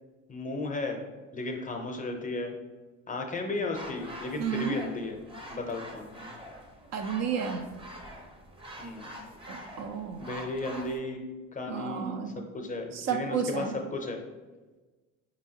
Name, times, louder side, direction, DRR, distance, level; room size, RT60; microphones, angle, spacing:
voice 1, 0.3-1.0 1.3-2.5 3.1-5.2 5.5-6.3 8.8-9.1 10.2-11.3 11.5-14.2, left 2 dB, 25° left, 3 dB, 0.6 m, -34 dB
sound 1, 3.7-11.0, equal, 15° right, 0.7 m, -44 dB
voice 2, 4.4-4.8 6.9-7.6 9.5-10.2 11.7-12.4 12.9-13.8, right 7 dB, 55° right, 6 dB, 0.5 m, -32 dB
4.5 x 2.8 x 2.8 m, 1.2 s
supercardioid pair, 75°, 32 cm